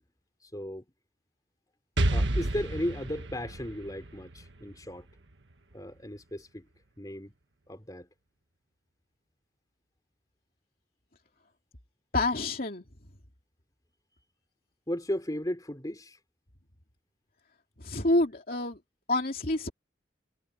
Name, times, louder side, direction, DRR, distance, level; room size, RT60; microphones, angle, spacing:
voice 1, 0.4-0.9 2.1-5.1 5.7-6.7 7.0-7.3 7.7-8.1 14.9-16.2, left 1 dB, 20° left, 3.8 m, -35 dB
Explosion, 2.0-5.7, right 1 dB, 75° right, 1.5 m, -31 dB
voice 2, 12.1-12.8 17.8-18.8 19.1-19.7, left 2 dB, 50° left, 2.7 m, -27 dB
head